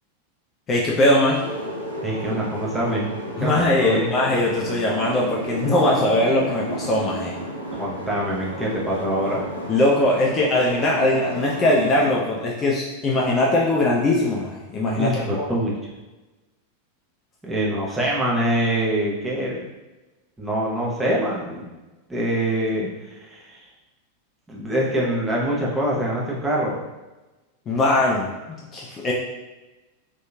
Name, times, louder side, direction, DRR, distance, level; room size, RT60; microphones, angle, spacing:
voice 1, 0.7-1.4 3.4-7.3 9.7-15.4 27.7-28.3 28.7-29.1, left 1 dB, 25° left, -3 dB, 0.4 m, -20 dB
sound 1, 1.3-12.2, equal, 90° right, 0.5 m, -32 dB
voice 2, 2.0-3.1 3.4-4.1 7.7-9.5 14.9-15.7 17.4-19.6 20.4-21.7 22.1-23.7 24.5-26.8, right 1 dB, 10° right, -5 dB, 0.7 m, -24 dB
2.8 x 2.6 x 2.2 m, 1.1 s
figure-of-eight pair, 90°, 0 cm